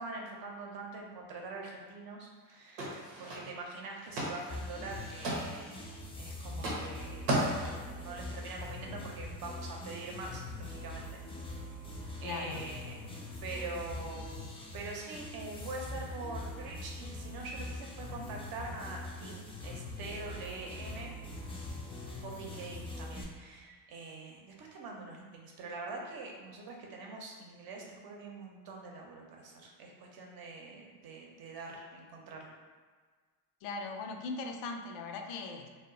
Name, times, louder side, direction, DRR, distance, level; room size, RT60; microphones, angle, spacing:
voice 1, 0.0-11.2 12.2-13.1 13.4-14.4 14.7-21.1 22.2-32.5, right 3 dB, 50° right, 0 dB, 0.7 m, -44 dB
sound 1, 2.5-2.6 2.8-3.7 4.0-4.6 4.8-5.8 6.5-6.9 7.3-7.9, right 1 dB, 90° right, 0.8 m, -34 dB
sound 2, 4.5-23.2, left 2 dB, 15° left, 0.3 m, -43 dB
voice 2, 12.2-12.6 33.6-35.7, left 4 dB, 75° left, 4 dB, 0.5 m, -39 dB
2.0 x 2.0 x 3.7 m, 1.5 s
supercardioid pair, 80°, 46 cm